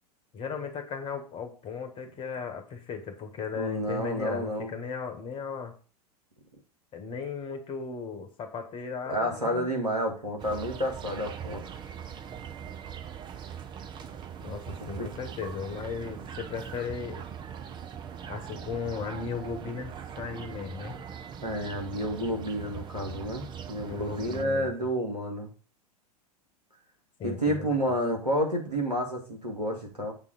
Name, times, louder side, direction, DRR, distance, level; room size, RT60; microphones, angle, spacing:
voice 1, 0.3-5.7 6.9-9.7 14.4-17.3 18.3-21.0 23.8-24.7 27.2-27.8, left 5 dB, 25° left, 7 dB, 1.6 m, -36 dB
voice 2, 3.5-4.8 9.1-11.6 15.0-15.1 21.4-25.5 27.2-30.1, equal, 85° right, 0 dB, 2.2 m, -30 dB
sound 1, 10.4-24.4, right 8 dB, 20° right, 0.7 m, -41 dB
7.4 x 3.7 x 6.6 m, 0.37 s
figure-of-eight pair, 90°, 20 cm